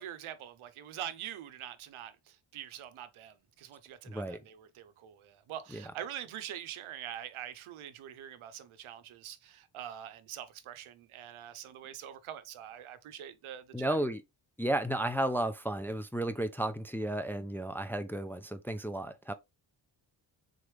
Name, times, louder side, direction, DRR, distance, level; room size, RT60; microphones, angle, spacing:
voice 1, 0.0-14.0, right 10 dB, 85° right, 0.7 m, -44 dB
voice 2, 4.1-4.4 5.7-5.8 13.7-14.2 14.6-19.3, right 1 dB, 5° left, 0.4 m, -33 dB
3.8 x 3.2 x 3.1 m
cardioid pair, 85°, 48 cm